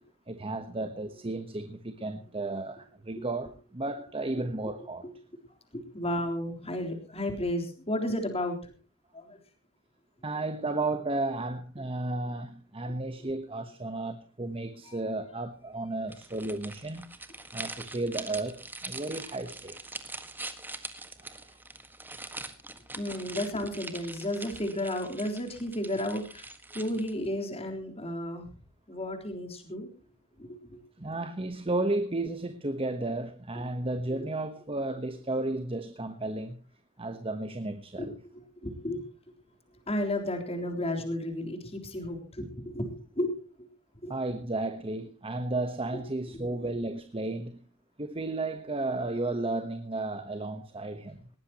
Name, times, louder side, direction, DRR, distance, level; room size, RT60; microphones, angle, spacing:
voice 1, 0.3-5.1 10.2-17.1 17.5-20.0 21.2-21.6 22.2-22.4 31.0-36.6 37.0-38.1 44.1-47.6 48.0-51.3, right 2 dB, 25° right, 1.1 m, -33 dB
voice 2, 5.7-8.7 9.1-9.4 14.9-15.0 23.0-26.5 26.7-28.4 28.9-29.9 30.4-30.8 38.0-39.0 39.9-43.3 44.0-44.1 45.9-46.0 46.3-46.7, left 1 dB, 30° left, 3.7 m, -33 dB
sound 1, 16.1-27.3, right 2 dB, 10° right, 1.6 m, -43 dB
20.0 x 18.0 x 3.0 m
head